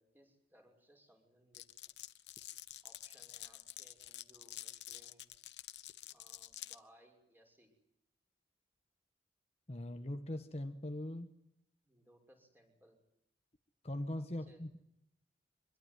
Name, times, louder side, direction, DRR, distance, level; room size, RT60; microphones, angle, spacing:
voice 1, 0.0-1.7 2.8-5.3 6.1-7.7 11.8-13.0 14.1-14.6, right 1 dB, 10° right, 3 dB, 6.2 m, -66 dB
Glass, 1.5-6.8, left 14 dB, 75° left, 1.0 m, -49 dB
voice 2, 9.7-11.3 13.8-14.7, left 1 dB, 35° left, 7 dB, 1.3 m, -41 dB
25.0 x 21.0 x 9.5 m, 0.81 s
head